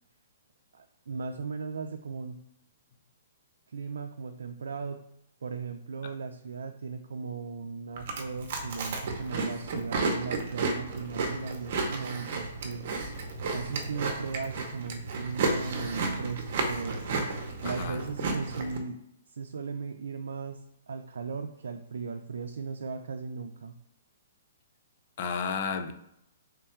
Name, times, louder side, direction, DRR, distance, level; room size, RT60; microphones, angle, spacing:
voice 1, 0.7-2.4 3.7-5.0 5.4-12.8 13.5-17.0 17.6-19.0 19.3-23.7, right 5 dB, 85° right, 0.3 m, -37 dB
Chewing mastication, 8.0-18.8, right 3 dB, 40° right, 0.6 m, -32 dB
voice 2, 17.6-18.0 25.2-25.9, left 6 dB, 35° left, 0.4 m, -32 dB
3.5 x 2.3 x 4.3 m
hypercardioid pair, 175°, 0 cm